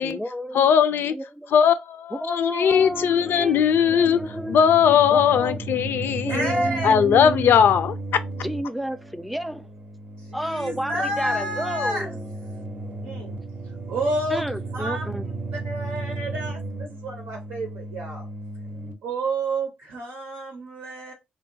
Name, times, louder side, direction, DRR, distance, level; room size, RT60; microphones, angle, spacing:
voice 1, 0.0-0.7 1.1-1.5 2.1-5.6 6.2-7.5 8.4-9.7 10.3-12.1 14.3-15.3, equal, ahead, 0.4 m, -31 dB
voice 2, 0.5-1.2 1.5-4.2 4.5-6.5 6.8-7.9, left 8 dB, 70° left, 0.3 m, -19 dB
sound 1, 2.7-18.9, right 2 dB, 45° right, 0.6 m, -35 dB
voice 3, 6.3-6.9 10.2-12.1 13.0-13.4 13.9-14.4 14.7-15.0 15.6-16.6 17.0-18.3 19.0-21.1, right 1 dB, 85° right, 0.7 m, -29 dB
2.8 x 2.1 x 2.7 m
supercardioid pair, 55°, 4 cm